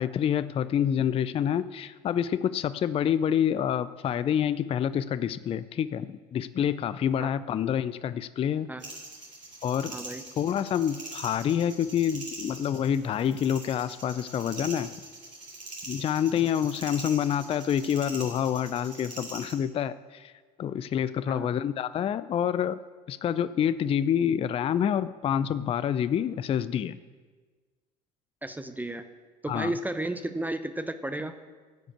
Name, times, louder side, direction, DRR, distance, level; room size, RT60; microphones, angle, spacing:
voice 1, 0.0-8.7 9.6-10.0 10.4-14.9 15.9-20.3 20.6-22.8 23.1-27.0 29.5-29.7, left 9 dB, 25° left, 15 dB, 0.4 m, -27 dB
sound 1, 8.8-19.5, right 2 dB, 85° right, 2.5 m, -43 dB
voice 2, 9.9-10.2 21.3-21.5 28.4-29.1 29.4-31.3, right 1 dB, 10° right, 9 dB, 0.7 m, -33 dB
15.0 x 5.1 x 8.1 m, 1.4 s
figure-of-eight pair, 65°, 21 cm